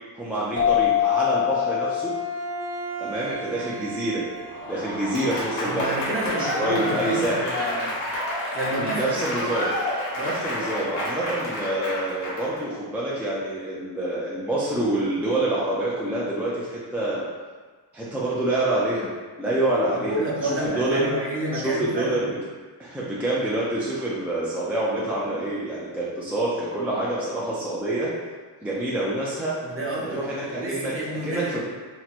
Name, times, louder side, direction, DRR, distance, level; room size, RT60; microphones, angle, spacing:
voice 1, 0.1-2.1 3.0-4.2 4.7-7.4 8.8-9.7 10.2-17.3 17.9-19.1 19.4-21.1 21.5-22.3 22.8-28.1 28.6-29.6 30.1-30.9 31.2-31.6, right 1 dB, 5° right, -7 dB, 0.4 m, -27 dB
sound 1, 0.6-3.9, left 11 dB, 25° left, 0.7 m, -25 dB
Bowed string instrument, 1.9-5.3, right 9 dB, 65° right, 1.0 m, -37 dB
Applause / Crowd, 4.4-12.6, left 1 dB, 65° left, 1.0 m, -29 dB
voice 2, 5.6-8.0 8.5-9.3 10.2-10.4 19.9-22.3 29.6-31.6, right 1 dB, 30° right, -5 dB, 0.8 m, -30 dB
2.9 x 2.2 x 4.1 m, 1.4 s
wide cardioid pair, 130°, 44 cm